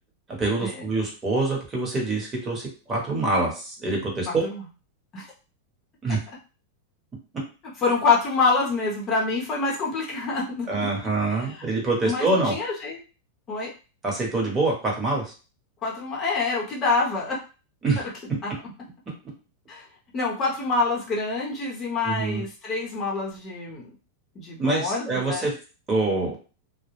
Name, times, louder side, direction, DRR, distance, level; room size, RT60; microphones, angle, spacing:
voice 1, 0.4-2.6 2.9-4.4 6.0-6.2 10.7-12.5 14.0-15.3 17.8-18.0 22.0-22.4 24.6-25.5 25.9-26.3, right 2 dB, 20° right, -1 dB, 1.0 m, -25 dB
voice 2, 4.3-4.6 5.1-5.3 7.8-10.7 11.4-11.7 12.1-13.0 13.5-13.7 15.8-17.4 18.4-18.5 19.7-19.8 20.1-23.9 24.3-25.5, left 4 dB, 30° left, -3 dB, 0.8 m, -26 dB
2.2 x 2.0 x 3.0 m, 0.34 s
hypercardioid pair, 125°, 0 cm